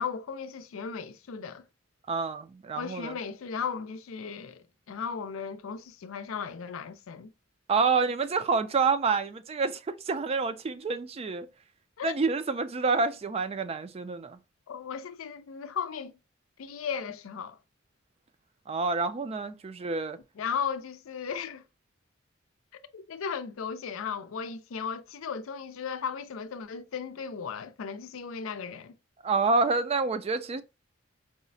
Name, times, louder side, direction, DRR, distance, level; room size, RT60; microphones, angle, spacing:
voice 1, 0.0-1.6 2.8-7.3 12.0-12.1 14.7-16.1 16.6-17.6 20.4-21.6 22.9-28.9, left 6 dB, 90° left, 0.4 m, -36 dB
voice 2, 2.1-3.1 7.7-11.5 12.0-14.4 18.7-20.2 29.2-30.6, right 4 dB, 30° right, 0.3 m, -28 dB
4.7 x 2.1 x 2.5 m
head